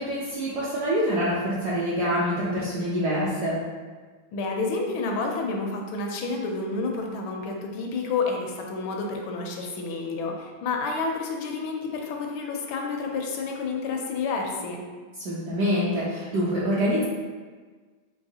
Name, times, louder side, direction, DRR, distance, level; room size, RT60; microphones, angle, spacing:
voice 1, 0.0-3.6 15.2-17.0, equal, 70° right, -8 dB, 1.0 m, -25 dB
voice 2, 4.3-14.8, left 4 dB, 75° left, 1 dB, 1.3 m, -29 dB
4.7 x 2.8 x 2.7 m, 1.4 s
omnidirectional pair, 2.3 m